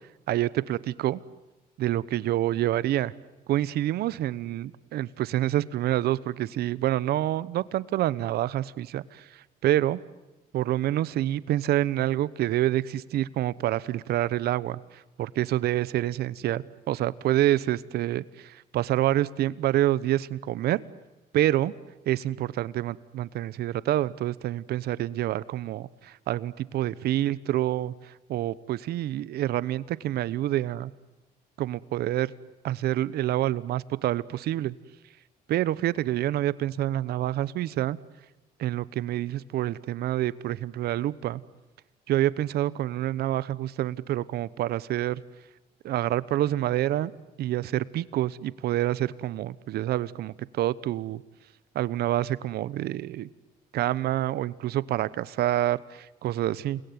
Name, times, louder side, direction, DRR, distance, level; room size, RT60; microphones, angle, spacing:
voice 1, 0.3-1.2 1.8-3.1 3.5-9.2 9.6-10.0 10.5-14.8 15.2-20.8 21.3-21.7 22.1-27.9 28.3-30.9 31.6-32.3 32.6-34.7 35.5-38.0 38.6-41.4 42.1-45.2 45.8-47.1 47.4-51.2 51.7-53.3 53.7-56.8, right 13 dB, 70° right, 18 dB, 1.0 m, -27 dB
29.0 x 21.0 x 9.5 m, 1.0 s
cardioid pair, 110°, 17 cm